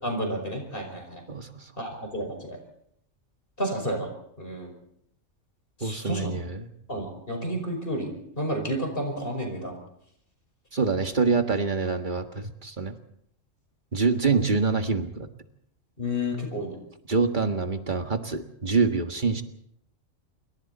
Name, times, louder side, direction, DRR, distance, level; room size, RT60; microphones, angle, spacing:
voice 1, 0.0-1.2 1.8-2.6 3.6-4.1 4.4-4.7 5.8-6.3 6.9-9.8 14.3-14.4 16.0-16.8, equal, 45° left, 3 dB, 5.5 m, -31 dB
voice 2, 1.3-1.6 5.8-6.7 10.7-13.0 13.9-15.3 17.1-19.4, right 4 dB, 40° right, 6 dB, 1.8 m, -25 dB
28.0 x 23.0 x 4.3 m, 0.72 s
omnidirectional pair, 1.3 m